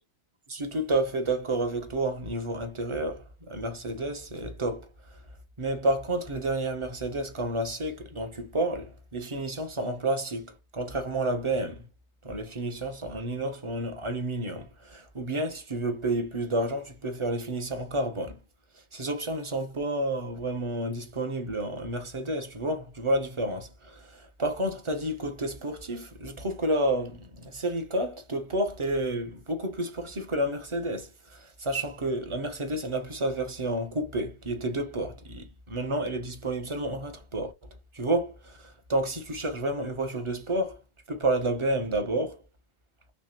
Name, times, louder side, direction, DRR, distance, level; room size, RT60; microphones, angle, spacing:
voice 1, 0.5-4.9 5.6-11.8 12.2-18.4 18.9-37.5 37.9-40.8 41.1-42.4, right 1 dB, 30° right, 0.6 m, -30 dB
3.2 x 3.2 x 2.8 m
omnidirectional pair, 1.4 m